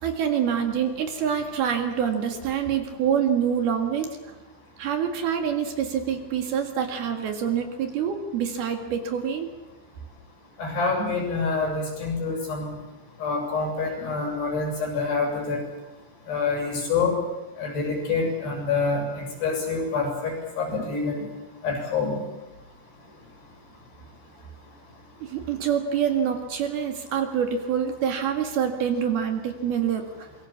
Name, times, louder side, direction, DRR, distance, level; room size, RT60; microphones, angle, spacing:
voice 1, 0.0-4.2 4.8-9.5 25.2-30.3, right 8 dB, 60° right, 5 dB, 3.6 m, -26 dB
voice 2, 10.6-12.7 13.2-15.6 16.3-17.2 17.6-21.3 21.6-22.2, left 4 dB, 65° left, 1 dB, 9.4 m, -26 dB
27.0 x 23.0 x 7.4 m, 1.1 s
omnidirectional pair, 5.2 m